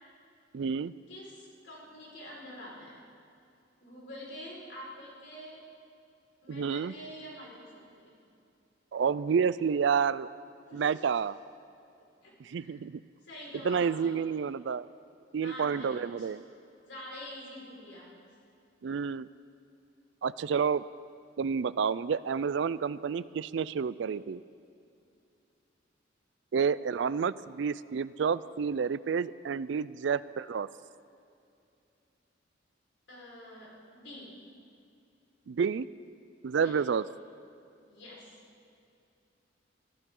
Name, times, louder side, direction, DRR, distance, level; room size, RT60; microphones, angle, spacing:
voice 1, 0.5-0.9 6.5-6.9 8.9-10.3 10.7-11.4 12.4-13.0 13.6-14.9 15.3-16.4 18.8-19.3 20.2-20.8 21.4-24.4 26.5-30.7 35.5-35.9 36.4-37.0, right 6 dB, 65° right, 17 dB, 0.4 m, -29 dB
voice 2, 1.1-3.0 3.8-5.6 6.4-8.1 10.7-11.1 12.0-12.8 13.3-14.2 15.4-16.3 16.8-18.1 33.1-34.4 36.6-36.8 37.9-38.3, equal, 65° left, -4 dB, 4.9 m, -46 dB
23.5 x 15.0 x 3.8 m, 2.6 s
head